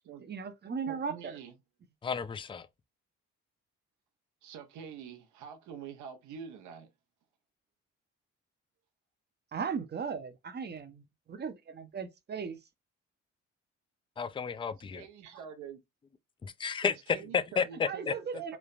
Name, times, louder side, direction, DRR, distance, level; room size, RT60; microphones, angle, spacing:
voice 1, 0.2-1.4 9.5-12.6 17.9-18.6, right 6 dB, 35° right, 0.6 m, -37 dB
voice 2, 0.9-1.5 4.4-6.9 14.9-15.8 16.8-18.6, right 7 dB, 80° right, 0.8 m, -46 dB
voice 3, 2.0-2.7 14.2-15.0 16.4-16.9 17.3-18.1, left 6 dB, 20° left, 0.3 m, -32 dB
3.2 x 2.1 x 2.4 m
cardioid pair, 75°, 30 cm